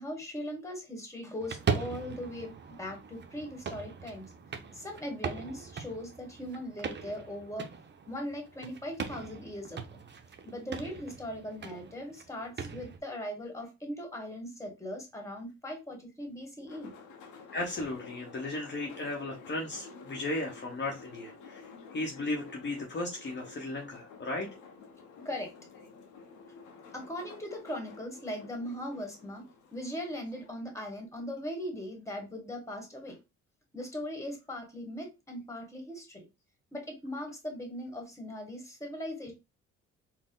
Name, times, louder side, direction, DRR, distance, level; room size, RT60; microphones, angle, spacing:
voice 1, 0.0-4.2 4.7-7.7 8.1-10.0 10.4-16.9 25.2-25.5 26.9-29.4 29.7-33.2 33.7-36.2 36.7-39.3, left 1 dB, 10° left, 3 dB, 1.4 m, -39 dB
sound 1, 1.4-13.0, right 5 dB, 35° right, 0.7 m, -40 dB
sound 2, 16.7-30.5, left 5 dB, 80° left, 0.8 m, -51 dB
voice 2, 17.5-24.5, left 2 dB, 35° left, 0 dB, 0.9 m, -36 dB
4.2 x 2.1 x 3.7 m, 0.25 s
cardioid pair, 90°, 30 cm